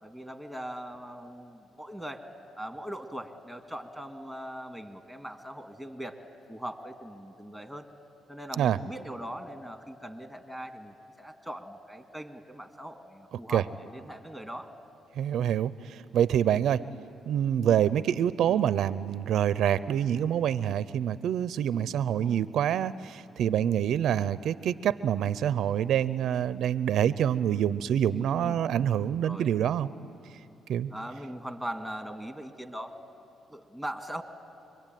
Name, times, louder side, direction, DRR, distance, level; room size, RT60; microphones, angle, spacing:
voice 1, 0.0-2.2 2.6-6.2 6.5-7.9 8.3-14.7 18.4-18.6 22.2-22.5 28.3-28.6 29.2-29.5 30.9-32.9 33.5-34.2, equal, 5° left, 6 dB, 1.9 m, -40 dB
voice 2, 15.2-16.8 17.3-29.9 30.7-30.9, right 10 dB, 75° right, 16 dB, 0.5 m, -26 dB
25.5 x 22.5 x 9.1 m, 2.8 s
cardioid pair, 90°, 0 cm